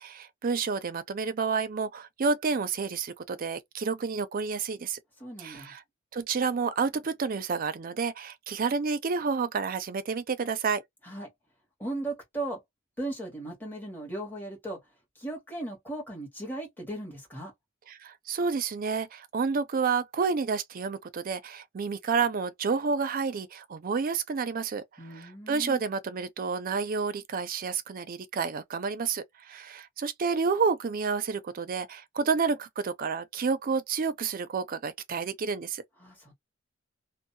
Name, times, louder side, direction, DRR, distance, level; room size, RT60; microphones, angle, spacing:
voice 1, 0.0-5.0 5.4-5.8 6.1-10.8 17.9-24.8 25.1-35.8, right 5 dB, 45° right, 0.4 m, -30 dB
voice 2, 5.2-5.7 11.0-11.3 11.8-12.6 13.0-14.8 15.2-17.5 25.0-25.8 36.0-36.3, right 2 dB, 10° left, 1.3 m, -37 dB
2.6 x 2.0 x 2.6 m
head